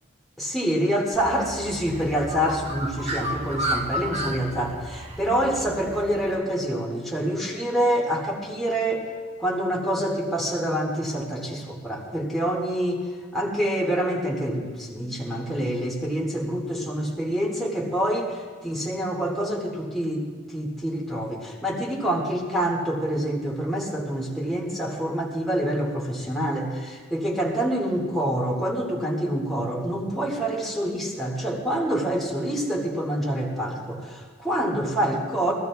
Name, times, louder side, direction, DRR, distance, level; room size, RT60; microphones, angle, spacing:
voice 1, 0.4-9.1 9.4-13.0 13.3-18.4 18.6-35.5, right 1 dB, ahead, -4 dB, 2.0 m, -26 dB
Bird, 1.1-6.3, right 1 dB, 30° right, 1.1 m, -32 dB
23.0 x 15.0 x 2.4 m, 1.5 s
head